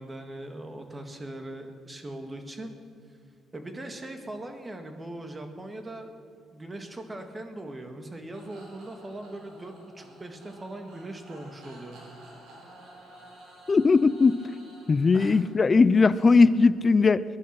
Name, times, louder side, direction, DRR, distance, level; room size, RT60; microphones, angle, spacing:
voice 1, 0.0-2.8 3.5-6.1 6.5-12.0 15.1-15.5, right 1 dB, 20° right, 6 dB, 2.0 m, -40 dB
FX A a a a singing computer, 8.3-16.7, right 1 dB, 75° right, 4.7 m, -52 dB
voice 2, 13.7-14.4 14.9-17.2, left 4 dB, 30° left, 16 dB, 0.5 m, -19 dB
20.5 x 11.0 x 5.9 m, 2.3 s
cardioid pair, 100°, 0 cm